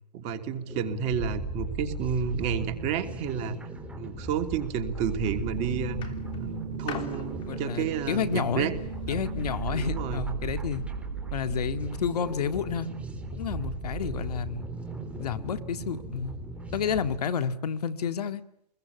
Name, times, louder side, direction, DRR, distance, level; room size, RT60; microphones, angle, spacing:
voice 1, 0.1-3.6 3.9-8.7 9.7-10.3, right 7 dB, 30° right, 7 dB, 3.1 m, -31 dB
sound 1, 0.7-17.2, right 2 dB, 5° right, 3.6 m, -37 dB
sound 2, 5.0-5.4 6.0-9.2 10.1-10.2, left 8 dB, 25° left, 3.1 m, -43 dB
sound 3, 5.2-11.8, right 6 dB, 85° right, 1.1 m, -39 dB
voice 2, 7.5-8.7 9.1-10.8 11.3-12.9 13.3-14.7 15.2-16.4 16.7-18.4, left 7 dB, 65° left, 11 dB, 2.0 m, -30 dB
27.5 x 21.5 x 8.5 m, 0.75 s
hypercardioid pair, 135°, 21 cm